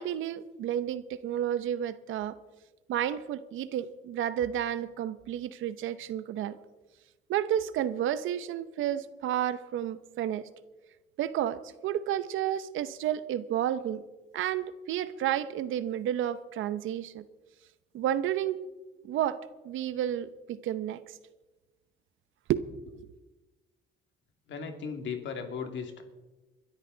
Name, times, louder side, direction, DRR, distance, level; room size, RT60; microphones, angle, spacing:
voice 1, 0.0-2.4 2.9-6.6 7.3-10.4 11.2-14.0 14.3-17.2 17.9-18.6 19.0-19.4 19.6-21.0 22.5-23.0, right 11 dB, 80° right, 14 dB, 0.8 m, -31 dB
voice 2, 24.5-26.0, left 6 dB, 70° left, 5 dB, 2.4 m, -36 dB
21.5 x 12.5 x 3.9 m, 1.1 s
cardioid pair, 90°, 20 cm